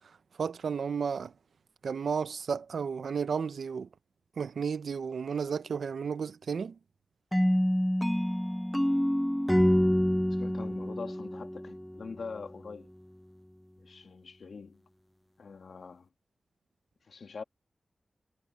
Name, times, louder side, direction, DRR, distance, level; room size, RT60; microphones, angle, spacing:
voice 1, 0.4-1.3 1.8-3.9 4.4-6.8, right 6 dB, 80° right, 0.6 m, -33 dB
sound 1, 7.3-12.2, equal, 5° left, 0.4 m, -27 dB
voice 2, 10.3-12.9 13.8-14.8 15.4-16.1 17.0-17.4, left 5 dB, 70° left, 2.2 m, -44 dB
wide cardioid pair, 90°, 0 cm